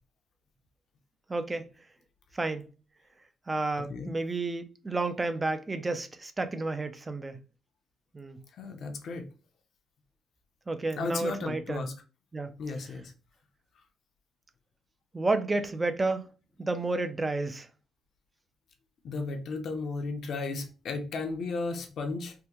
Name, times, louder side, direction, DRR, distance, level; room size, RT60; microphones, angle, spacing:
voice 1, 1.3-1.6 2.3-2.7 3.5-7.4 8.1-8.4 10.7-11.9 12.3-12.6 15.1-16.2 16.6-17.7, right 2 dB, 20° right, 0.4 m, -31 dB
voice 2, 3.8-4.2 8.6-9.3 11.0-11.9 12.6-13.1 19.0-22.3, left 3 dB, 65° left, 0.7 m, -34 dB
3.5 x 2.1 x 2.9 m
cardioid pair, 90°, 0 cm